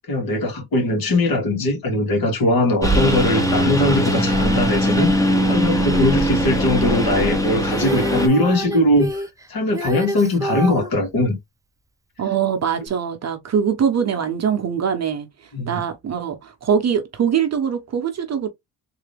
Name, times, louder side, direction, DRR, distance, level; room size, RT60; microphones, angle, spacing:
voice 1, 0.1-11.3 15.5-15.8, left 1 dB, 55° left, 2.2 m, -20 dB
Engine, 2.8-8.3, equal, 10° left, 1.0 m, -20 dB
Female singing, 7.6-10.9 12.9-13.0, right 1 dB, 10° right, 0.4 m, -27 dB
voice 2, 12.2-15.3 15.7-18.5, right 7 dB, 40° right, 0.9 m, -22 dB
3.8 x 2.8 x 3.3 m
cardioid pair, 125°, 43 cm